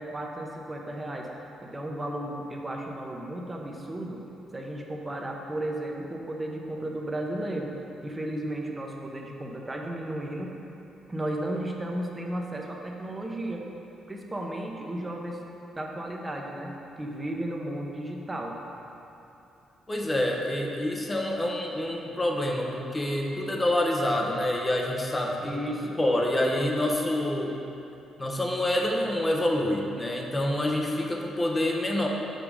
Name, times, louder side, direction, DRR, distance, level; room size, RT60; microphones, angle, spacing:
voice 1, 0.0-1.3 1.6-4.2 4.5-7.7 8.0-10.6 11.1-13.7 14.1-15.4 15.7-18.6 25.4-26.0, right 1 dB, 20° right, 0 dB, 0.8 m, -34 dB
voice 2, 19.9-25.6 26.0-27.5 28.2-32.1, left 1 dB, 20° left, 0 dB, 0.8 m, -27 dB
5.8 x 5.3 x 4.9 m, 2.9 s
cardioid pair, 90°, 0 cm